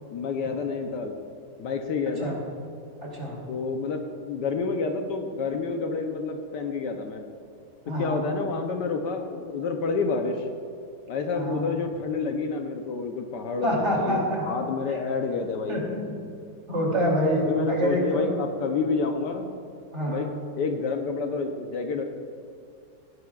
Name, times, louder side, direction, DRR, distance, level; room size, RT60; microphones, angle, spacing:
voice 1, 0.1-1.1 1.6-2.4 3.5-7.2 8.0-10.5 11.1-15.8 17.5-19.5 20.1-20.3 20.6-22.0, left 4 dB, 70° left, 4 dB, 1.3 m, -29 dB
voice 2, 3.0-3.4 7.9-8.2 11.3-11.6 13.6-14.4 14.9-15.0 15.7-16.1 16.7-18.3 19.9-20.2, equal, 35° right, -4 dB, 3.0 m, -26 dB
18.0 x 11.0 x 2.4 m, 2.4 s
omnidirectional pair, 2.0 m